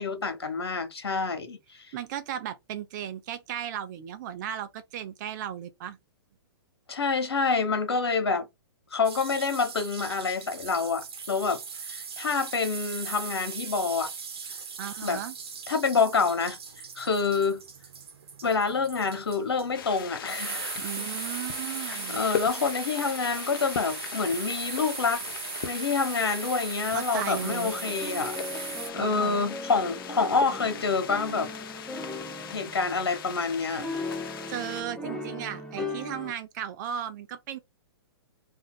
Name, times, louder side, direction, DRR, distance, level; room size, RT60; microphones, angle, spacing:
voice 1, 0.0-1.9 6.9-8.5 8.9-14.1 15.0-15.2 15.7-16.6 17.0-17.6 18.4-20.9 21.9-25.2 25.6-31.5 32.5-33.9, left 4 dB, 90° left, 1.0 m, -27 dB
voice 2, 1.9-6.0 14.8-15.4 20.8-22.2 26.9-27.7 29.0-29.4 34.0-37.6, right 10 dB, 50° right, 0.7 m, -36 dB
sound 1, 9.0-28.9, right 6 dB, 75° right, 1.0 m, -39 dB
sound 2, 19.7-34.8, left 8 dB, 60° left, 0.6 m, -39 dB
sound 3, 27.6-36.3, left 2 dB, ahead, 0.6 m, -38 dB
2.7 x 2.4 x 3.8 m
hypercardioid pair, 130°, 13 cm